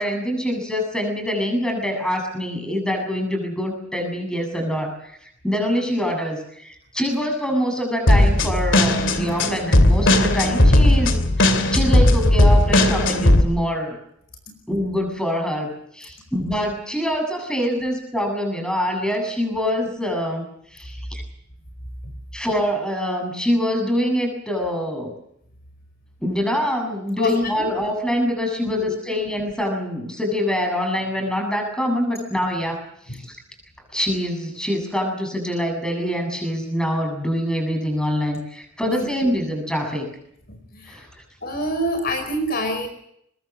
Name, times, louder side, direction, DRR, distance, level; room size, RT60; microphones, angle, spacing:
voice 1, 0.0-14.0 14.7-21.2 22.3-25.1 26.2-33.4 33.9-40.1 40.9-41.1, equal, 5° left, 4 dB, 7.6 m, -25 dB
sound 1, 8.1-13.4, left 1 dB, 65° left, 2.6 m, -16 dB
voice 2, 27.2-27.7 28.8-28.9 33.1-33.2 38.8-39.3 40.5-41.1 41.4-42.9, equal, 50° left, 6 dB, 4.9 m, -27 dB
23.5 x 21.0 x 7.5 m, 0.73 s
head